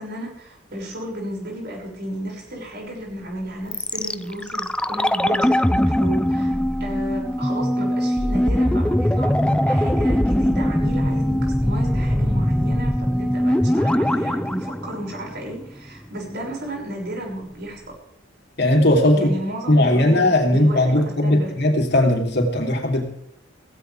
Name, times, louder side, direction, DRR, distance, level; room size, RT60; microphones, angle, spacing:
voice 1, 0.0-6.5 6.8-17.9 19.1-21.5, right 1 dB, 60° right, -1 dB, 6.6 m, -33 dB
sound 1, 3.7-15.7 16.0-16.1, equal, 5° left, 0.5 m, -21 dB
voice 2, 18.6-19.3 19.7-23.0, left 1 dB, 60° left, 2 dB, 3.4 m, -18 dB
17.0 x 17.0 x 3.5 m, 0.75 s
head